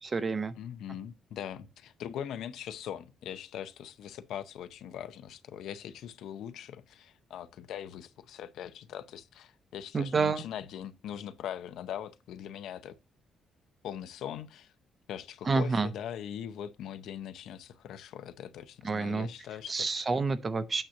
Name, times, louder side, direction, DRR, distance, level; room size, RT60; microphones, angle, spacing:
voice 1, 0.0-0.5 9.9-10.4 15.5-15.9 18.8-19.3 19.7-20.8, right 4 dB, 30° right, 0.6 m, -28 dB
voice 2, 0.6-12.9 13.8-14.7 15.1-20.0, left 10 dB, 80° left, 0.6 m, -41 dB
8.8 x 2.9 x 6.4 m
cardioid pair, 135°, 0 cm